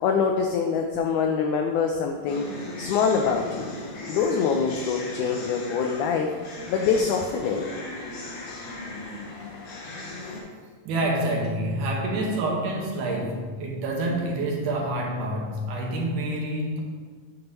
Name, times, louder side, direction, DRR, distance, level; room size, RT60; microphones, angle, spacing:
voice 1, 0.0-2.5 2.8-3.7 4.1-7.7, left 6 dB, 90° left, 3 dB, 1.7 m, -25 dB
sound 1, 2.3-10.4, left 2 dB, 75° left, 2.9 m, -37 dB
voice 2, 10.9-16.8, right 1 dB, 70° right, -1 dB, 2.2 m, -27 dB
8.8 x 3.0 x 5.3 m, 1.5 s
omnidirectional pair, 4.0 m